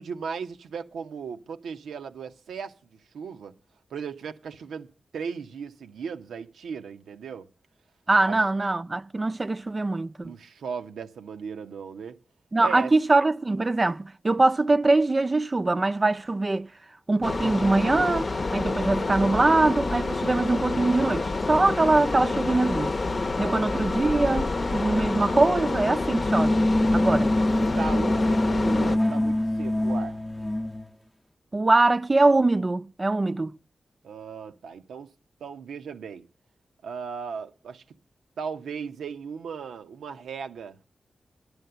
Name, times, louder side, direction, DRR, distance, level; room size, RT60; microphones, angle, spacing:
voice 1, 0.0-2.7 3.1-3.5 3.9-7.5 8.3-8.4 10.2-12.2 12.6-12.9 23.3-23.6 27.1-27.2 27.6-30.2 34.0-35.1 35.4-36.2 36.8-37.8 38.4-40.8, right 6 dB, 90° right, 0.7 m, -37 dB
voice 2, 8.1-10.3 12.5-16.7 17.1-22.9 23.4-26.7 26.9-27.3 31.5-33.5, right 2 dB, 40° right, 0.5 m, -23 dB
sound 1, 17.2-29.0, left 3 dB, 50° left, 0.7 m, -28 dB
sound 2, 26.1-30.9, left 1 dB, 10° left, 0.7 m, -24 dB
10.5 x 8.0 x 6.8 m
cardioid pair, 45°, 0 cm